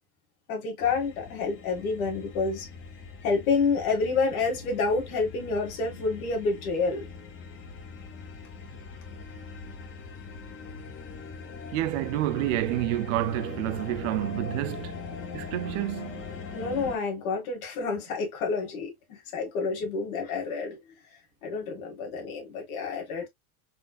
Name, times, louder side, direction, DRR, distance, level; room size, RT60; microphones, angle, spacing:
voice 1, 0.5-2.7 3.2-7.1 16.5-18.9 19.3-20.8 21.4-23.3, left 4 dB, 75° left, 2.0 m, -28 dB
sound 1, 0.8-17.0, left 5 dB, 30° left, 0.8 m, -41 dB
voice 2, 11.7-15.0 15.3-16.2, right 15 dB, 60° right, 0.5 m, -29 dB
4.1 x 3.2 x 2.4 m
supercardioid pair, 150°, 44 cm